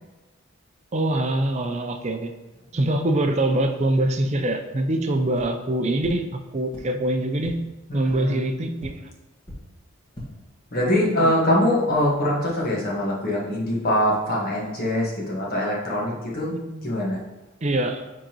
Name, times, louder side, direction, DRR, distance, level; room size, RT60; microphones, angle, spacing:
voice 1, 0.9-2.3 2.7-7.6 7.9-8.9 10.9-11.4 16.5-16.9 17.6-18.0, right 1 dB, 35° right, 5 dB, 0.5 m, -24 dB
sound 1, 5.3-5.4 6.0-6.1 6.7-6.8 7.4-7.5 8.1-8.2 8.8-8.9 9.4-9.5 10.0-10.2, left 1 dB, 25° left, 1.6 m, -39 dB
voice 2, 7.9-8.4 10.7-16.5 16.8-17.2, left 1 dB, 45° left, -4 dB, 1.5 m, -23 dB
10.0 x 3.8 x 3.0 m, 1.1 s
head